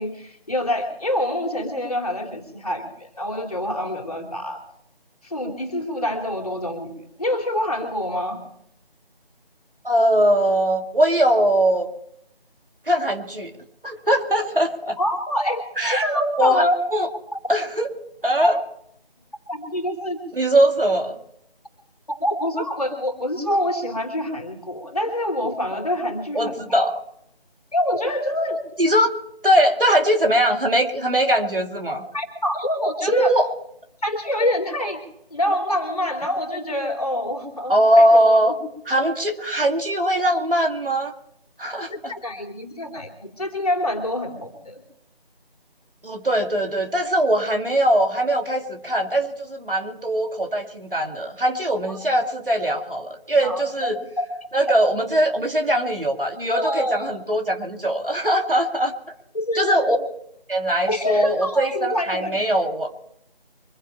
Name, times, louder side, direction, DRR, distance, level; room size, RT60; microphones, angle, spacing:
voice 1, 0.0-4.6 5.2-8.4 15.0-16.8 17.3-17.4 19.5-20.2 22.1-26.8 27.7-28.6 32.1-33.3 34.0-35.0 35.3-38.5 41.9-44.8 51.9-52.0 53.4-54.3 54.7-54.8 56.5-57.2 59.3-60.0 60.9-62.5, left 1 dB, 40° left, 3 dB, 3.1 m, -26 dB
voice 2, 9.8-11.9 12.9-13.5 13.8-15.0 15.8-16.1 16.4-16.7 16.9-17.1 17.5-17.9 18.2-18.6 20.4-21.2 26.3-27.0 28.8-29.1 29.4-32.0 33.1-33.5 37.7-38.6 38.9-41.1 41.6-42.1 46.0-54.0 54.5-59.1 59.5-60.0 60.5-62.9, right 1 dB, 60° right, 4 dB, 2.5 m, -21 dB
25.0 x 10.5 x 4.3 m, 0.73 s
figure-of-eight pair, 170°, 30 cm